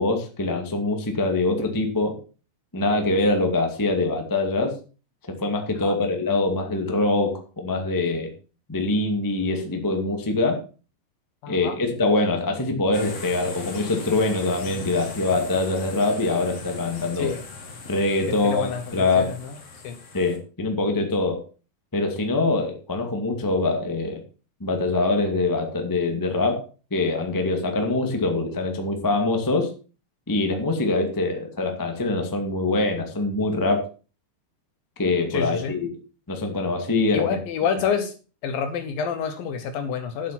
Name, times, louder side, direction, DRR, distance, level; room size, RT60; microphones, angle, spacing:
voice 1, 0.0-2.1 2.7-4.7 5.3-8.3 8.7-10.6 11.5-17.3 17.9-19.4 20.1-21.4 21.9-24.2 24.6-26.6 26.9-29.7 30.3-33.8 35.0-35.9 36.3-37.3, left 2 dB, 15° left, 4 dB, 0.8 m, -24 dB
voice 2, 11.4-11.8 17.2-17.4 18.3-19.5 19.8-20.0 35.3-35.8 37.1-38.1 38.4-40.3, left 7 dB, 70° left, 9 dB, 2.5 m, -28 dB
sound 1, 12.9-20.4, left 3 dB, 40° left, 2.9 m, -39 dB
10.5 x 8.1 x 6.0 m, 0.36 s
omnidirectional pair, 4.9 m